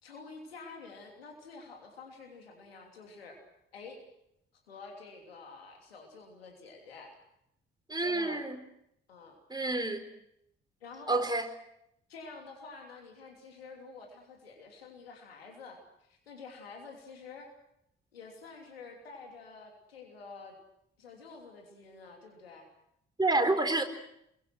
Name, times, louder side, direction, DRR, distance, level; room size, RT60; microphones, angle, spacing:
voice 1, 0.0-3.4 3.7-4.0 4.7-7.1 8.0-8.4 9.1-9.4 10.8-11.3 12.1-17.5 18.1-20.5 21.0-22.7, left 4 dB, 85° left, 2 dB, 3.2 m, -48 dB
voice 2, 7.9-8.6 9.5-10.0 11.1-11.5 23.2-23.8, right 2 dB, 15° right, 6 dB, 4.2 m, -28 dB
27.5 x 22.5 x 6.2 m, 0.79 s
figure-of-eight pair, 40°, 29 cm